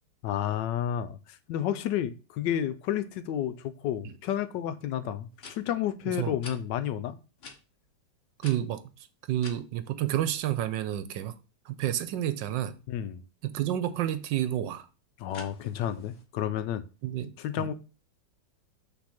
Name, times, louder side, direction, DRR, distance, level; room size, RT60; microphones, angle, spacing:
voice 1, 0.2-7.2 12.9-13.2 15.2-16.8 17.4-17.7, left 10 dB, 75° left, 1.2 m, -31 dB
sound 1, 4.6-4.7 5.3-5.6 6.4-6.6 7.4-7.6 8.4-9.6 15.3-16.3, left 4 dB, 45° left, 1.0 m, -46 dB
voice 2, 6.1-6.4 8.4-8.8 9.3-11.4 11.6-12.8 13.4-14.9 17.0-17.7, right 12 dB, 80° right, 1.3 m, -30 dB
6.0 x 3.4 x 5.7 m
omnidirectional pair, 2.0 m